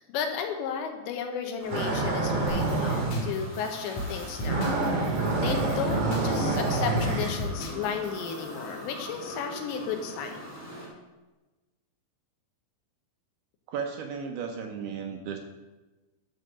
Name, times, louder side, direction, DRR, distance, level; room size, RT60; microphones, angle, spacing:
voice 1, 0.0-4.8 5.0-10.4, left 6 dB, 80° left, 4 dB, 3.2 m, -34 dB
sound 1, 1.6-10.9, equal, 5° left, 1.9 m, -42 dB
sound 2, 1.7-3.3 3.9-4.2 4.4-7.4, right 2 dB, 50° right, 1.8 m, -27 dB
sound 3, 2.5-8.8, left 2 dB, 55° left, 2.6 m, -38 dB
voice 2, 13.7-15.4, right 6 dB, 75° right, 3 dB, 2.5 m, -34 dB
11.5 x 4.6 x 6.6 m, 1.2 s
omnidirectional pair, 5.1 m